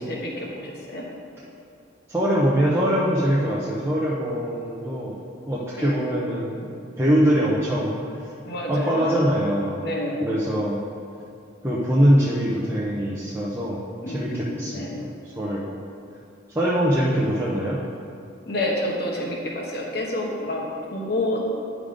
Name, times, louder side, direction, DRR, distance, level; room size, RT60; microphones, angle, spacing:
voice 1, 0.1-1.1 5.7-6.1 8.4-9.2 9.8-10.3 14.0-15.0 18.5-21.4, left 1 dB, 55° left, -2 dB, 1.2 m, -29 dB
voice 2, 2.1-5.2 5.5-6.7 7.0-7.9 8.7-9.8 10.2-10.8 11.6-13.8 14.1-14.9 15.4-15.7 16.5-17.8, equal, 10° right, -7 dB, 0.7 m, -22 dB
10.5 x 3.7 x 5.0 m, 2.5 s
head